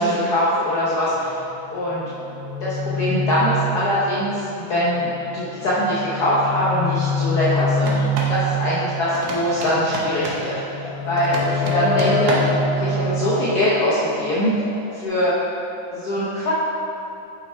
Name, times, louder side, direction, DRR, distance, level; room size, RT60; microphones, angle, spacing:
voice 1, 0.0-1.3 1.7-2.1 2.6-8.0 8.3-12.4 12.7-14.5 14.9-15.3 15.9-16.5, equal, 60° left, -8 dB, 1.4 m, -22 dB
sound 1, 1.1-4.4 4.8-15.0, left 2 dB, 85° left, 1.4 m, -26 dB
sound 2, 7.8-8.4 9.1-10.5 11.2-12.6, right 2 dB, 75° right, 1.7 m, -29 dB
6.8 x 5.7 x 4.5 m, 2.8 s
omnidirectional pair, 2.1 m